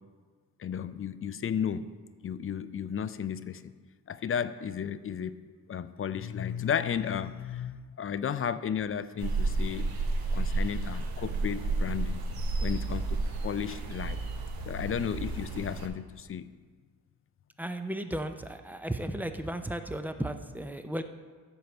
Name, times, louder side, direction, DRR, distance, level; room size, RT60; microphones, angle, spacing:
voice 1, 0.6-1.8 2.2-3.7 4.1-5.3 5.7-9.9 10.3-12.3 12.6-14.2 14.7-16.4, left 8 dB, 40° left, 13 dB, 0.5 m, -33 dB
sound 1, 9.2-15.9, right 3 dB, 85° right, 1.2 m, -31 dB
voice 2, 17.6-21.0, right 1 dB, 5° right, 8 dB, 0.6 m, -35 dB
13.5 x 4.6 x 6.6 m, 1.5 s
cardioid pair, 105°, 35 cm